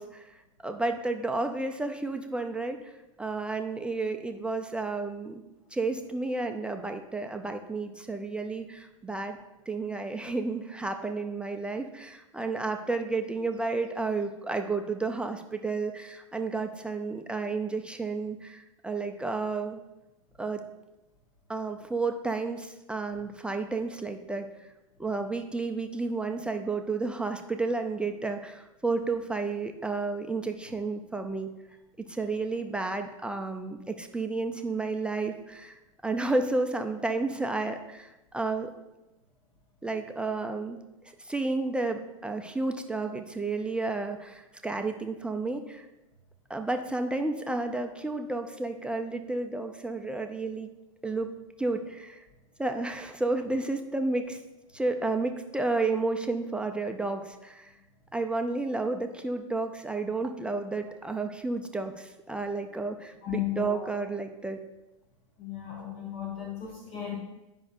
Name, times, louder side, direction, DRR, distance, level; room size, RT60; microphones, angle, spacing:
voice 1, 0.0-2.9 3.2-5.4 5.7-9.4 9.7-19.8 20.4-20.6 21.5-24.7 25.0-31.5 32.1-38.7 39.8-40.8 41.2-45.9 46.5-50.7 51.0-51.3 51.6-52.2 52.6-54.4 54.7-57.7 58.1-64.6, right 3 dB, 5° right, 5 dB, 0.4 m, -31 dB
voice 2, 63.2-63.9 65.4-67.2, left 11 dB, 45° left, -1 dB, 1.2 m, -35 dB
10.5 x 5.4 x 2.5 m, 0.98 s
figure-of-eight pair, 95°, 17 cm